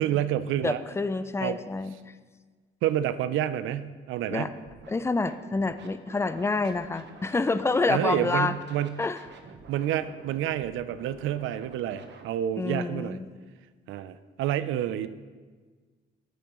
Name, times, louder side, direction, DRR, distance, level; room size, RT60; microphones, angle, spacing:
voice 1, 0.0-0.8 1.4-1.6 2.8-4.5 7.9-9.0 9.7-13.2 13.9-15.1, right 11 dB, 85° right, 14 dB, 0.4 m, -29 dB
voice 2, 0.6-2.1 4.3-4.5 4.9-8.5 9.0-9.2 12.6-13.3, left 3 dB, 15° left, 12 dB, 0.4 m, -28 dB
Scratching (performance technique), 4.5-4.9 5.2-7.8 8.1-12.3, right 5 dB, 65° right, 0.9 m, -50 dB
9.1 x 8.3 x 3.0 m, 1.4 s
cardioid pair, 90°, 20 cm